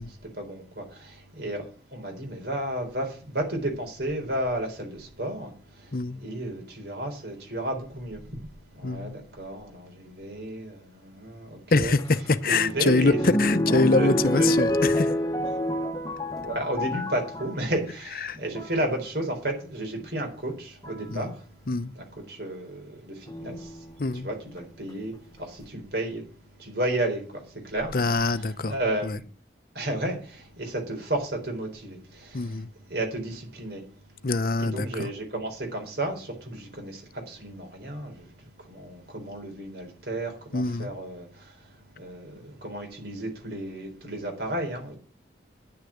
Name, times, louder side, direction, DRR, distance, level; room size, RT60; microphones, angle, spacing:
voice 1, 0.0-8.4 8.7-14.6 15.4-15.5 16.4-21.4 21.9-23.8 24.1-26.2 26.6-29.2 29.7-32.6 32.9-33.8 34.6-38.3 38.7-41.5 42.0-45.0, right 1 dB, 65° right, 4.1 m, -33 dB
voice 2, 8.8-9.1 11.7-15.1 18.2-18.4 21.1-21.2 21.7-21.9 24.0-24.3 27.9-28.7 29.0-29.2 32.3-32.7 34.2-35.1 40.5-40.9, left 3 dB, 50° left, 0.7 m, -24 dB
sound 1, 12.0-17.6 18.4-18.8 20.0-20.1 20.8-21.2 23.3-23.9 24.6-24.7 24.9-25.0, left 1 dB, 20° left, 1.0 m, -27 dB
10.5 x 6.6 x 8.4 m
head